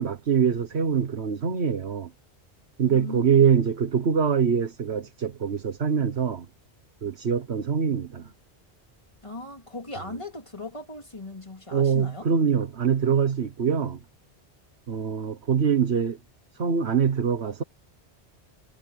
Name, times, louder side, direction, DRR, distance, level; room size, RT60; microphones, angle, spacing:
voice 1, 0.0-2.1 2.8-6.4 7.0-8.3 11.7-14.0 14.9-16.2 16.5-17.6, right 7 dB, 75° right, 1.5 m, -24 dB
voice 2, 2.8-3.3 9.2-12.3, left 2 dB, 30° left, 3.2 m, -38 dB
omnidirectional pair, 1.1 m